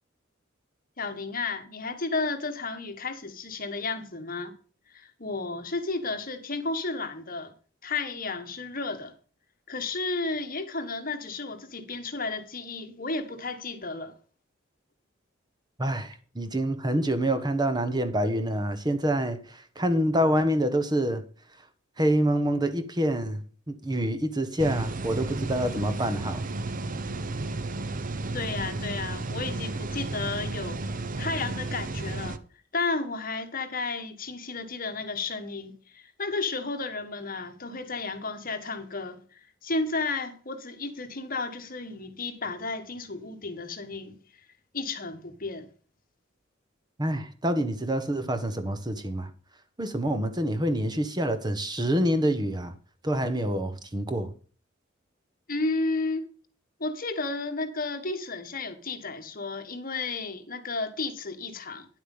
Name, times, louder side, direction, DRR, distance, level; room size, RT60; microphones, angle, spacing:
voice 1, 1.0-4.5 4.9-7.5 7.8-9.1 9.7-14.1 28.3-32.4 32.7-44.2 44.7-45.7 55.5-56.2 56.8-61.9, left 3 dB, 45° left, 1.6 m, -33 dB
voice 2, 15.8-21.2 22.0-26.4 47.0-49.3 49.8-52.7 53.0-54.3, right 1 dB, 20° right, 1.3 m, -27 dB
sound 1, 24.6-32.4, right 2 dB, 45° right, 0.9 m, -33 dB
10.0 x 8.4 x 5.4 m
head